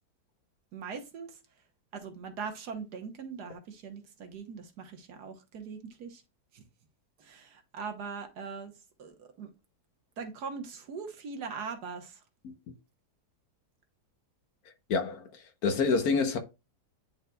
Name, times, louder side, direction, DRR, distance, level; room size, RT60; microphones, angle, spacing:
voice 1, 0.7-1.4 1.9-6.2 6.5-6.6 7.2-8.7 9.0-9.5 10.2-12.2, right 5 dB, 75° right, 1.6 m, -41 dB
voice 2, 14.9-15.2 15.6-16.4, left 4 dB, 65° left, 1.3 m, -26 dB
10.5 x 4.0 x 2.3 m
omnidirectional pair, 1.8 m